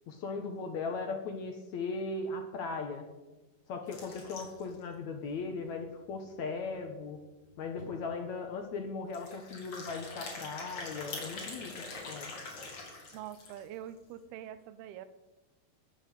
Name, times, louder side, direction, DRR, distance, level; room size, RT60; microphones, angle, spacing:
voice 1, 0.1-3.1 3.7-7.2 7.6-12.3, left 4 dB, 60° left, 4 dB, 2.1 m, -38 dB
sound 1, 3.9-4.8 5.3-5.4 5.5-5.6 6.1-6.2 7.4-7.5 7.8-8.0 9.1-13.7, left 3 dB, 45° left, 4.2 m, -44 dB
voice 2, 13.1-15.1, right 10 dB, 85° right, 13 dB, 2.8 m, -44 dB
19.0 x 7.1 x 8.2 m, 1.1 s
omnidirectional pair, 4.5 m